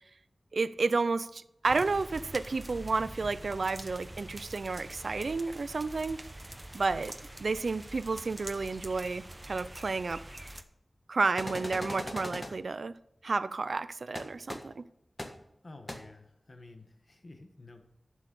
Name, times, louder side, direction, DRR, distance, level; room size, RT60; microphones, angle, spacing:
voice 1, 0.5-6.2 6.7-10.2 11.1-13.0 13.2-14.8, right 4 dB, 85° right, 0.4 m, -31 dB
sound 1, 1.6-10.6, right 1 dB, 30° right, 0.8 m, -45 dB
sound 2, 11.4-12.5 14.1-14.2 14.5-14.6 15.2-15.3 15.9-16.0, left 1 dB, 35° left, 1.5 m, -38 dB
voice 2, 15.6-17.8, left 2 dB, 55° left, 1.3 m, -51 dB
11.0 x 6.3 x 5.3 m
wide cardioid pair, 70°, 0 cm